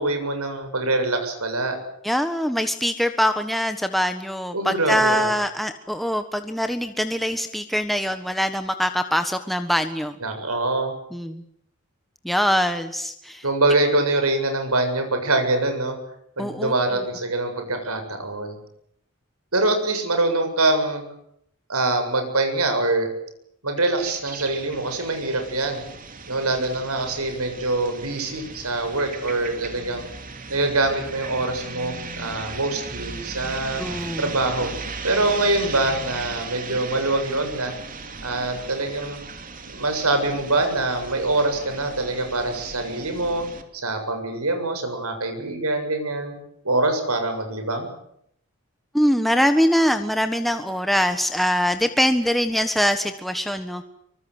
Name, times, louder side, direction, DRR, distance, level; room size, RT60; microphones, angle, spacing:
voice 1, 0.0-1.8 4.5-5.3 10.2-10.9 13.4-16.0 16.4-18.6 19.5-21.0 21.7-23.1 23.6-25.8 26.3-30.1 30.5-33.8 34.2-34.7 35.0-37.7 38.2-39.2 39.7-43.4 43.7-46.4 46.6-47.9, right 2 dB, 85° right, 6 dB, 7.4 m, -24 dB
voice 2, 2.0-10.1 11.1-11.4 12.2-13.4 16.4-16.7 33.8-34.3 48.9-53.8, equal, ahead, 7 dB, 1.3 m, -23 dB
sound 1, 24.0-43.6, right 4 dB, 40° right, 3.1 m, -37 dB
25.0 x 24.0 x 8.1 m, 0.73 s
head